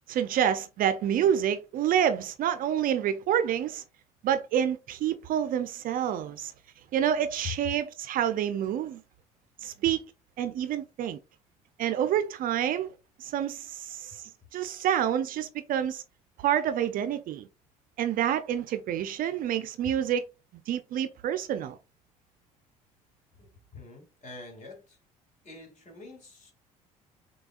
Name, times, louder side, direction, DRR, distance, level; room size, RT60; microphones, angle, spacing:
voice 1, 0.1-3.8 4.2-6.5 6.9-9.0 9.6-10.1 10.4-11.2 11.8-12.9 13.2-14.2 14.5-16.0 16.4-17.5 18.0-20.2 20.7-21.8, right 9 dB, 50° right, 0.5 m, -28 dB
voice 2, 23.4-25.0 25.4-26.5, left 2 dB, 40° left, 2.4 m, -47 dB
6.6 x 2.3 x 2.4 m
hypercardioid pair, 55°, 18 cm